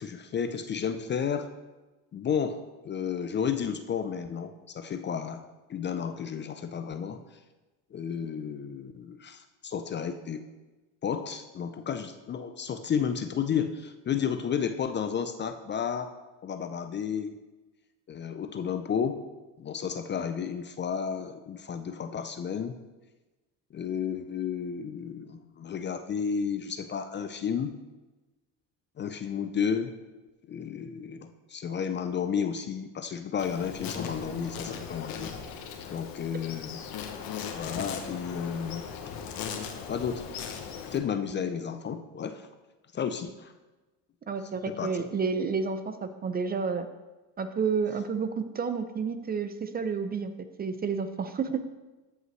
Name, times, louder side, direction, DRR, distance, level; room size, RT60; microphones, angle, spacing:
voice 1, 0.0-1.5 2.1-7.2 7.9-10.4 11.0-16.1 16.4-17.3 18.1-19.2 19.6-22.7 23.7-27.8 29.0-29.9 30.5-35.3 35.9-36.8 37.5-38.9 39.9-40.3 40.9-42.4 42.9-43.5 44.7-45.0, left 7 dB, 30° left, 9 dB, 0.5 m, -32 dB
Insect, 33.4-41.0, left 7 dB, 60° left, 1.2 m, -38 dB
voice 2, 44.3-46.9 47.4-50.3 50.6-51.6, right 5 dB, 25° right, 10 dB, 0.5 m, -30 dB
13.5 x 5.6 x 3.1 m, 1.1 s
supercardioid pair, 100°, 40 cm